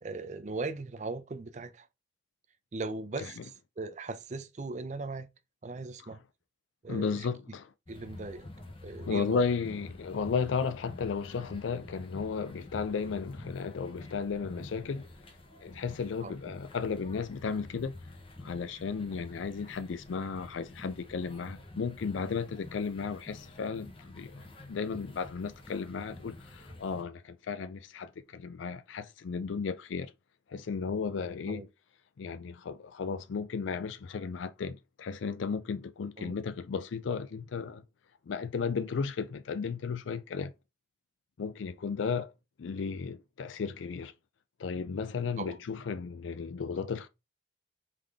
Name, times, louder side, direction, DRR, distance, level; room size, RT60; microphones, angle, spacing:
voice 1, 0.0-1.9 2.7-5.3 5.6-6.2 6.8-7.3 7.9-8.4 8.8-9.4 16.2-16.3 31.5-31.7 36.2-36.4 45.4-45.6, right 3 dB, 40° right, 0.4 m, -38 dB
voice 2, 6.9-7.7 9.1-15.1 15.6-17.9 18.4-24.4 24.7-30.1 30.5-31.7 32.2-37.8 38.3-40.5 41.4-42.3 42.6-44.1 44.6-47.1, left 5 dB, 85° left, 0.4 m, -34 dB
sound 1, 7.9-27.0, left 2 dB, 30° left, 0.9 m, -48 dB
3.7 x 3.6 x 3.3 m
head